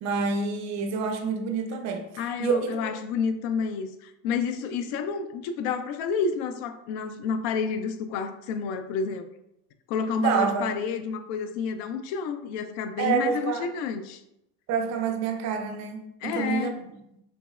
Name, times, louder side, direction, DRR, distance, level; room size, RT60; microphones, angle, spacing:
voice 1, 0.0-2.1 2.4-2.9 10.2-10.7 13.0-13.7 14.7-16.8, right 5 dB, 35° right, 4 dB, 0.5 m, -27 dB
voice 2, 2.2-9.3 9.9-14.2 16.2-16.8, left 5 dB, 50° left, 9 dB, 0.5 m, -30 dB
3.8 x 3.0 x 2.4 m, 0.82 s
supercardioid pair, 115°, 47 cm